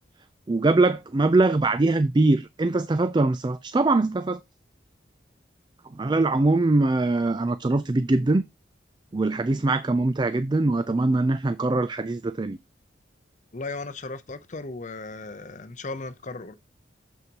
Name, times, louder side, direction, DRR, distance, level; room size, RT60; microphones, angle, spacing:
voice 1, 0.5-4.4 5.9-8.4 9.1-12.6, right 2 dB, 25° right, 0.4 m, -22 dB
voice 2, 13.5-16.5, left 3 dB, 40° left, 0.7 m, -36 dB
7.3 x 6.4 x 2.9 m
head